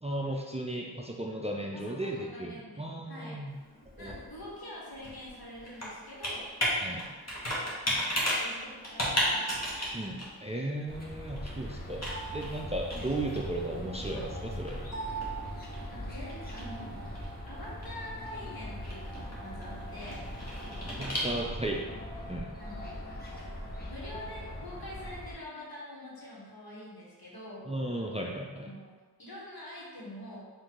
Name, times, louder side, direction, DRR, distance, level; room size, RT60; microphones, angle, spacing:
voice 1, 0.0-3.5 4.0-4.1 6.8-7.1 9.9-14.9 20.9-21.9 22.3-22.5 27.7-28.7, right 1 dB, 15° right, -1 dB, 0.4 m, -35 dB
voice 2, 1.7-3.5 4.0-6.5 8.2-9.5 9.9-10.1 15.9-16.9 17.5-20.2 22.6-27.7 28.6-30.4, left 1 dB, 65° left, -6 dB, 1.4 m, -45 dB
Computer keyboard, 3.5-21.8, equal, 40° left, 1.3 m, -36 dB
sound 1, 10.9-25.3, equal, 25° left, 0.9 m, -41 dB
3.8 x 2.6 x 4.6 m, 1.4 s
wide cardioid pair, 55°, 40 cm